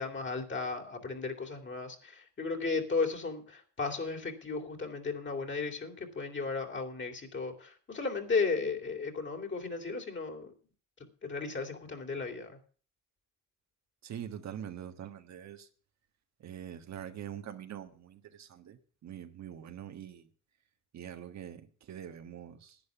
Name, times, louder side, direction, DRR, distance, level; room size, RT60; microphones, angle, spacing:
voice 1, 0.0-10.5 11.2-12.6, left 4 dB, 40° left, 3.0 m, -35 dB
voice 2, 14.0-15.7 16.4-20.3 20.9-22.8, right 10 dB, 65° right, 1.5 m, -44 dB
11.0 x 9.6 x 7.1 m
cardioid pair, 90°, 30 cm